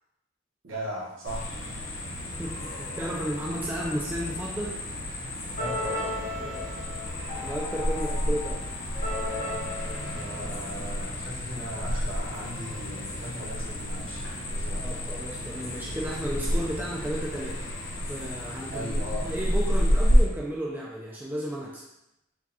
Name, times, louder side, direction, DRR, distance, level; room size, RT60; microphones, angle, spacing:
voice 1, 0.6-1.7 5.5-6.2 10.1-14.2 14.5-15.0 18.7-19.3, right 1 dB, 70° right, -5 dB, 1.1 m, -38 dB
sound 1, 1.2-20.3, equal, 65° left, 0.8 m, -30 dB
voice 2, 2.4-4.8 6.3-6.7 7.4-8.6 14.8-17.6 18.1-21.8, right 1 dB, 10° right, -4 dB, 0.3 m, -33 dB
sound 2, 5.6-11.3, left 2 dB, 40° left, 0.9 m, -36 dB
4.6 x 2.3 x 2.8 m, 0.88 s
head